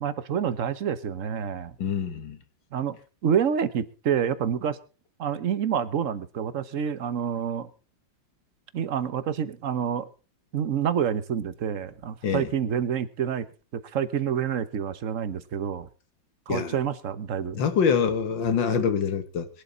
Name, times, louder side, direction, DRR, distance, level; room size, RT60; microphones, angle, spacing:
voice 1, 0.0-1.7 2.7-3.0 3.2-4.8 5.2-7.7 8.7-10.1 10.5-13.5 13.9-15.9 16.5-17.6, right 8 dB, 50° right, 1.2 m, -28 dB
voice 2, 1.8-2.4 12.2-12.5 16.5-16.7 17.5-19.5, left 6 dB, 80° left, 2.2 m, -25 dB
21.0 x 11.5 x 4.0 m
omnidirectional pair, 2.0 m